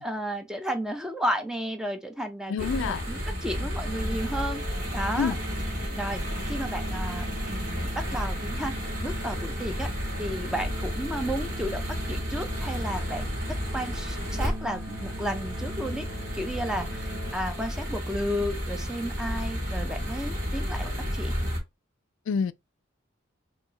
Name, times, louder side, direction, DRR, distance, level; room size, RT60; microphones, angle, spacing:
voice 1, 0.0-4.6 4.9-5.4 5.9-9.9 10.2-11.8 12.1-16.1 16.3-21.3, equal, 5° right, 0.6 m, -33 dB
voice 2, 2.5-3.0 5.2-5.4 22.3-22.5, left 6 dB, 85° left, 0.3 m, -27 dB
sound 1, 2.6-21.6, equal, 45° right, 2.0 m, -32 dB
sound 2, 3.8-17.3, right 1 dB, 70° right, 1.4 m, -42 dB
4.3 x 2.9 x 2.9 m
head